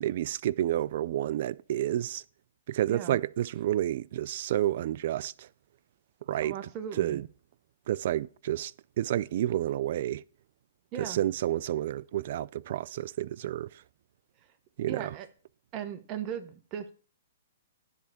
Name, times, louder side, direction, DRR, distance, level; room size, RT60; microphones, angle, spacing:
voice 1, 0.0-2.2 2.7-5.5 6.3-6.5 7.0-7.2 7.9-10.2 11.0-13.7 14.8-15.0, right 12 dB, 55° right, 0.3 m, -30 dB
voice 2, 2.9-3.2 6.4-7.2 10.9-11.2 14.9-15.3 15.7-16.9, right 9 dB, 30° right, 0.9 m, -37 dB
10.5 x 3.5 x 6.8 m
hypercardioid pair, 140°, 0 cm